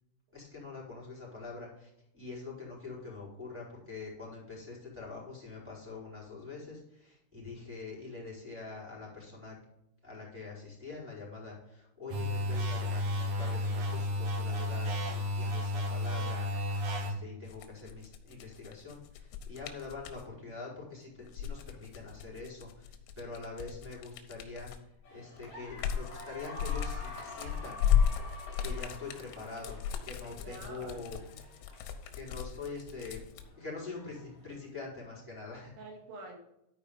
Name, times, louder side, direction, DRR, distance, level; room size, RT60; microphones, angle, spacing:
voice 1, 0.3-9.5 10.0-16.5 17.0-27.8 28.6-31.2 32.1-33.2 33.5-35.7, left 4 dB, 5° right, -4 dB, 3.3 m, -44 dB
sound 1, 12.1-17.1, left 1 dB, 55° right, 2.8 m, -32 dB
sound 2, 17.5-20.2 21.2-24.9 25.4-33.4, left 8 dB, 90° left, 3.7 m, -35 dB
sound 3, 25.0-34.8, left 2 dB, 50° left, 4.3 m, -49 dB
voice 2, 30.4-31.5 35.8-36.4, right 2 dB, 75° right, 0 dB, 4.7 m, -47 dB
13.0 x 4.9 x 5.1 m, 0.83 s
omnidirectional pair, 6.0 m